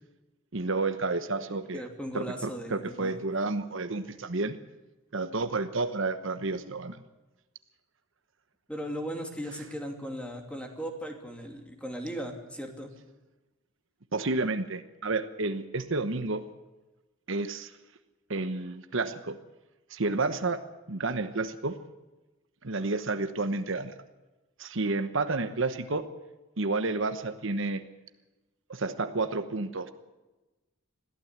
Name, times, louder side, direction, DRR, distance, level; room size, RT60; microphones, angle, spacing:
voice 1, 0.5-1.8 2.1-4.6 5.1-7.0 14.1-16.4 17.3-17.7 18.3-19.4 19.9-20.6 20.9-21.8 22.6-23.9 24.6-26.1 26.6-27.8 28.7-29.9, right 3 dB, 60° right, 9 dB, 1.1 m, -30 dB
voice 2, 1.7-3.1 8.7-12.9, equal, 5° left, 3 dB, 2.7 m, -37 dB
21.5 x 15.0 x 8.2 m, 1.1 s
head